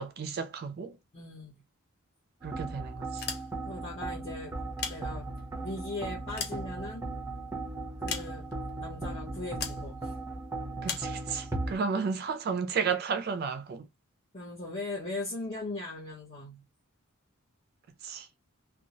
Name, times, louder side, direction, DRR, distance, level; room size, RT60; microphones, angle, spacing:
voice 1, 0.0-1.0 2.4-3.2 10.8-13.8 18.0-18.3, right 5 dB, 45° right, 0.3 m, -33 dB
voice 2, 1.1-1.6 3.6-4.6 4.9-5.3 5.6-7.0 8.0-8.4 8.8-10.1 14.3-16.6, left 2 dB, 30° left, 0.9 m, -39 dB
sound 1, 2.4-11.8, right 2 dB, 15° right, 0.7 m, -37 dB
sound 2, 3.1-3.9 4.6-5.6 6.0-7.3 8.1-8.7 9.6-9.9 10.8-11.2, left 6 dB, 45° left, 0.6 m, -38 dB
2.7 x 2.2 x 2.8 m
head